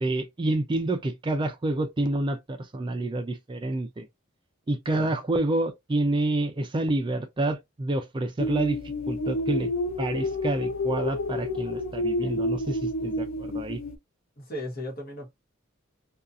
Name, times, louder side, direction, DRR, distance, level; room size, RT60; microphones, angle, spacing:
voice 1, 0.0-4.1 4.7-8.8 9.1-9.7 10.0-13.8, right 2 dB, 25° right, 0.4 m, -28 dB
sound 1, 8.4-14.0, left 1 dB, 70° left, 0.4 m, -29 dB
voice 2, 14.4-15.3, equal, 45° left, 1.1 m, -36 dB
2.6 x 2.3 x 2.4 m
head